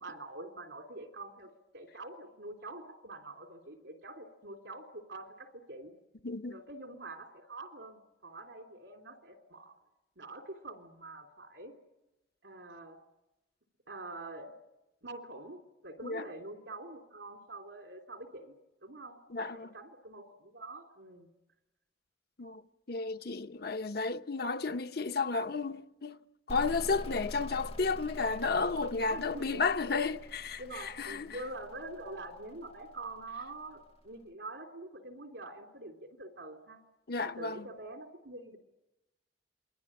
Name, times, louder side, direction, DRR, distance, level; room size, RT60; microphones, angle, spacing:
voice 1, 0.0-5.9 6.5-9.7 10.2-11.7 12.4-13.0 13.9-14.5 15.0-18.5 18.8-21.3 29.1-29.8 30.6-36.8 37.2-38.6, right 2 dB, 80° right, 3.4 m, -46 dB
voice 2, 6.2-6.6 16.0-16.3 19.3-19.7 22.4-22.6 22.9-26.2 26.5-31.4 37.1-37.7, left 4 dB, 60° left, 0.9 m, -33 dB
sound 1, 26.5-34.0, left 1 dB, 30° left, 0.8 m, -46 dB
28.0 x 22.0 x 8.9 m
head